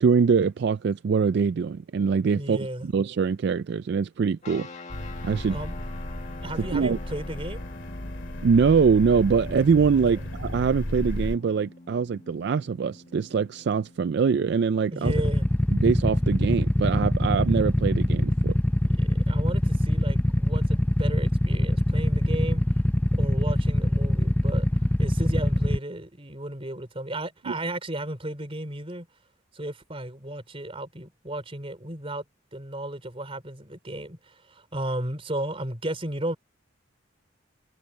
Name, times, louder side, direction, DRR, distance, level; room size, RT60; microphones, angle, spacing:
voice 1, 0.0-4.7 5.2-5.6 6.6-7.0 8.4-15.1 15.7-18.6 27.5-27.6, right 5 dB, 55° right, 0.3 m, -23 dB
voice 2, 2.3-2.9 5.5-5.8 6.4-7.6 10.1-10.2 14.9-15.5 18.8-22.7 23.2-24.7 25.0-29.1 29.5-32.2 32.5-36.4, right 1 dB, 30° right, 3.8 m, -34 dB
sound 1, 4.4-16.2, left 2 dB, 35° left, 2.0 m, -46 dB
sound 2, 4.9-11.4, left 1 dB, 65° left, 2.3 m, -34 dB
Motorcycle / Idling, 15.1-25.8, left 1 dB, 10° left, 0.6 m, -23 dB
head